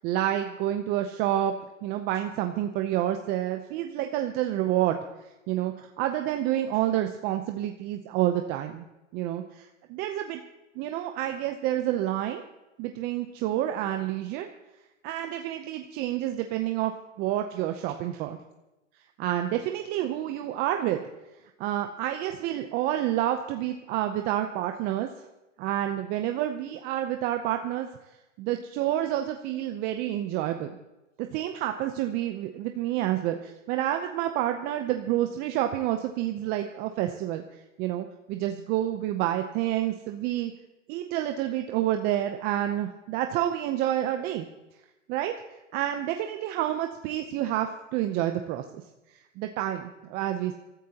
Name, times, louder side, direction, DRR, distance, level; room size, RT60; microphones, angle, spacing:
voice 1, 0.0-1.5 1.8-8.9 9.1-10.4 10.8-12.4 12.8-14.5 15.0-16.9 17.2-18.4 19.2-21.0 21.6-25.1 25.6-27.9 28.4-30.7 31.2-40.5 40.9-44.5 45.1-45.3 45.7-48.8 49.1-50.5, right 12 dB, 25° right, 6 dB, 0.6 m, -29 dB
24.0 x 14.0 x 2.9 m, 1.0 s
hypercardioid pair, 130°, 38 cm